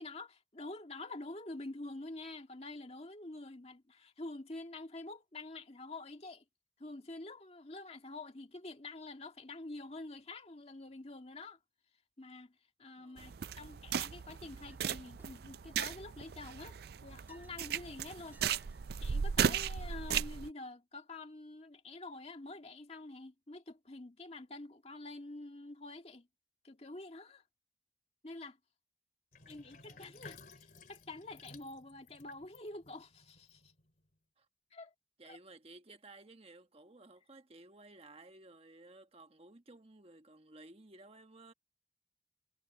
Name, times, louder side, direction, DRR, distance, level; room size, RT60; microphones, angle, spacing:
voice 1, 0.0-6.4 6.8-11.6 12.2-16.8 17.0-18.4 19.0-26.3 26.6-27.4 28.2-28.6 29.5-30.4 30.9-33.7 34.7-34.9 35.2-35.4, left 2 dB, 35° left, 1.9 m, -47 dB
voice 2, 13.0-13.7 29.3-30.2 34.4-34.5 35.2-41.5, right 2 dB, 35° right, 1.3 m, -57 dB
sound 1, 13.2-20.5, right 7 dB, 60° right, 0.4 m, -36 dB
Chink clink, 14.5-14.8 15.2-15.7 16.2-17.7 18.2-18.9, right 2 dB, 10° right, 2.5 m, -66 dB
Sink (filling or washing), 29.3-34.1, left 4 dB, 50° left, 3.0 m, -56 dB
head